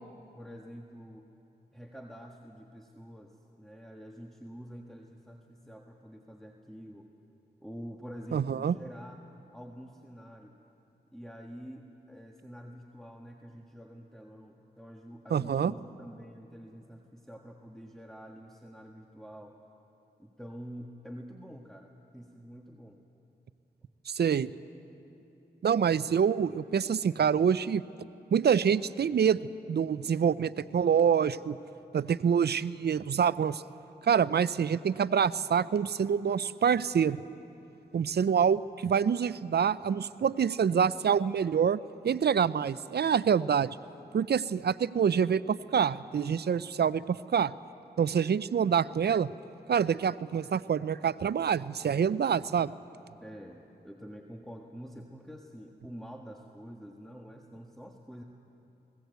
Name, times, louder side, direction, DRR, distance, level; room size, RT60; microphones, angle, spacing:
voice 1, 0.3-1.3 1.7-7.1 7.6-9.3 9.5-10.6 11.1-19.6 20.2-23.0 53.2-58.2, equal, ahead, 2 dB, 1.5 m, -47 dB
voice 2, 8.3-8.8 15.3-15.7 24.1-24.5 25.6-27.8 28.3-29.4 29.7-31.6 31.9-33.6 34.0-37.2 37.9-43.7 44.1-47.5 48.0-49.3 49.7-52.7, right 7 dB, 65° right, 18 dB, 0.5 m, -26 dB
20.5 x 17.5 x 8.2 m, 2.9 s
cardioid pair, 45°, 19 cm